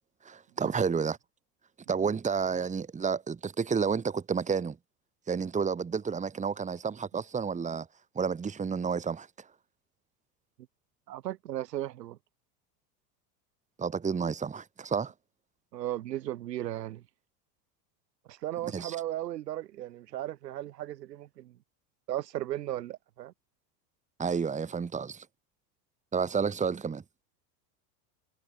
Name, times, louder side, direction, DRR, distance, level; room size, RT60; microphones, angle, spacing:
voice 1, 0.2-1.2 1.9-4.8 5.3-7.9 8.1-9.3 13.8-15.1 18.7-19.0 24.2-25.2 26.1-27.0, right 6 dB, 15° right, 1.6 m, -30 dB
voice 2, 11.1-12.2 15.7-17.0 18.3-21.6 22.1-23.3, right 13 dB, 85° right, 2.5 m, -36 dB
hypercardioid pair, 105°, 48 cm